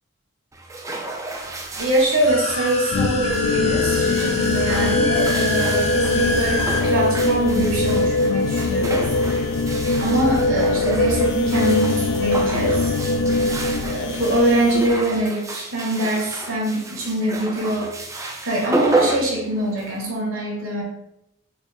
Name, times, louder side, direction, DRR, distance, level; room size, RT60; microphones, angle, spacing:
sound 1, 0.5-20.1, right 2 dB, 15° right, 0.4 m, -31 dB
voice 1, 1.8-9.1 10.0-12.9 13.8-17.9 18.4-20.8, right 1 dB, 70° right, -3 dB, 1.5 m, -23 dB
sound 2, 2.1-6.8, left 1 dB, 30° left, 0.7 m, -27 dB
sound 3, 2.9-14.9, left 3 dB, 65° left, 0.4 m, -22 dB
4.2 x 2.8 x 4.2 m, 0.83 s
head